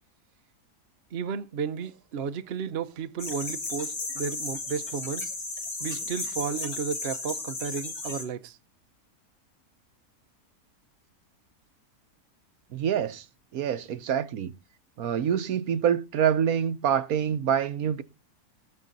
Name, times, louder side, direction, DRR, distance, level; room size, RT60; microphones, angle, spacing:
voice 1, 1.1-5.3 5.8-8.6, right 6 dB, 50° right, 0.9 m, -33 dB
sound 1, 3.2-8.3, left 3 dB, 70° left, 3.1 m, -34 dB
voice 2, 12.7-13.2 13.5-14.5 15.0-18.0, right 8 dB, 70° right, 1.2 m, -26 dB
19.0 x 7.4 x 4.0 m
omnidirectional pair, 1.6 m